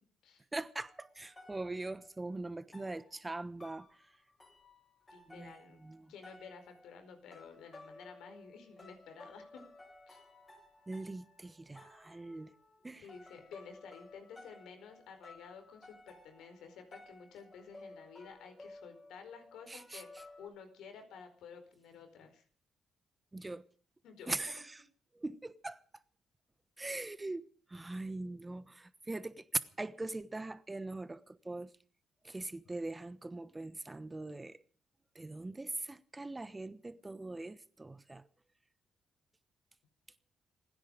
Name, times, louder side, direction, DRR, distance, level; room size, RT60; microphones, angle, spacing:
voice 1, 0.5-3.9 5.3-5.5 5.8-6.1 10.9-12.5 12.8-13.1 19.7-20.0 23.3-23.6 24.3-24.6 25.1-25.8 26.8-29.5 29.8-31.7 32.2-34.6 35.1-38.2, right 2 dB, 20° right, 1.1 m, -42 dB
sound 1, 0.8-20.5, left 2 dB, 25° left, 7.4 m, -57 dB
voice 2, 5.1-5.8 6.1-9.6 10.1-10.2 13.0-22.4 23.4-23.5 24.0-24.4, left 6 dB, 80° left, 4.7 m, -52 dB
27.5 x 10.0 x 5.1 m
cardioid pair, 90°, 0 cm